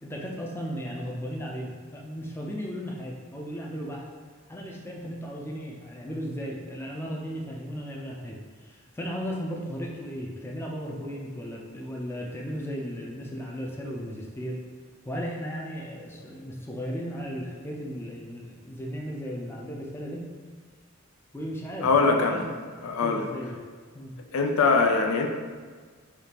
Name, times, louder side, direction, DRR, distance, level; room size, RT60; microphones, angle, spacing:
voice 1, 0.0-4.1 4.5-14.6 15.0-20.3 21.3-22.5 23.0-23.6 23.9-24.2, equal, 10° left, -2 dB, 0.4 m, -35 dB
voice 2, 21.8-22.4 22.8-23.2 24.3-25.3, left 4 dB, 90° left, 3 dB, 0.4 m, -22 dB
5.0 x 2.5 x 2.9 m, 1.6 s
head